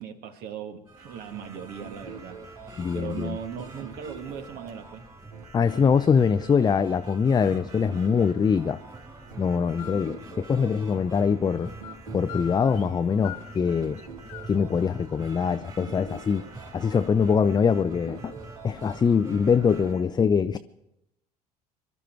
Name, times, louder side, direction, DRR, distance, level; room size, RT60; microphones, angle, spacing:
voice 1, 0.0-5.1, right 8 dB, 55° right, 7 dB, 1.7 m, -39 dB
sound 1, 0.9-19.9, right 3 dB, 20° right, 4.0 m, -46 dB
sound 2, 1.0-20.0, right 4 dB, 85° right, 1.6 m, -47 dB
voice 2, 2.8-3.4 5.5-8.8 9.4-11.7 12.1-14.0 14.5-16.4 16.7-18.3 18.6-20.6, left 6 dB, 20° left, 11 dB, 0.5 m, -23 dB
sound 3, 9.8-10.1 11.4-12.0 12.3-13.0 13.2-14.7, left 14 dB, 70° left, 0.7 m, -42 dB
23.5 x 12.5 x 4.6 m, 0.86 s
figure-of-eight pair, 60°, 19 cm